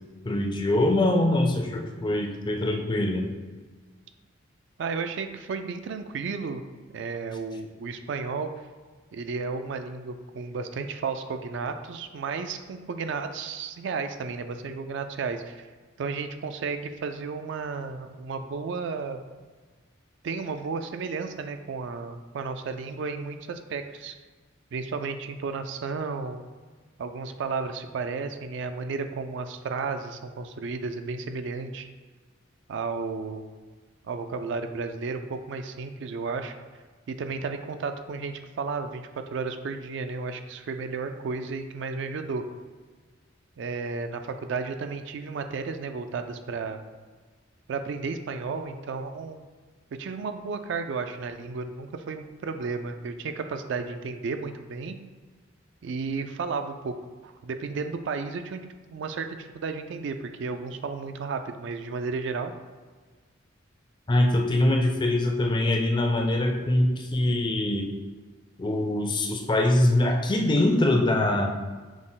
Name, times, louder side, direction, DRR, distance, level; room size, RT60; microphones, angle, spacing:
voice 1, 0.2-3.3 64.1-67.9 68.6-71.5, left 1 dB, 25° left, 3 dB, 0.4 m, -23 dB
voice 2, 4.8-6.6 6.9-8.5 9.1-15.7 16.0-19.2 20.2-24.2 24.7-26.4 27.0-31.9 32.7-33.4 34.0-36.5 37.1-42.4 43.6-46.8 47.7-49.4 49.9-55.0 55.8-56.9 57.2-58.6 58.9-62.5, right 4 dB, 65° right, 7 dB, 0.3 m, -33 dB
6.1 x 2.1 x 3.8 m, 1.4 s
head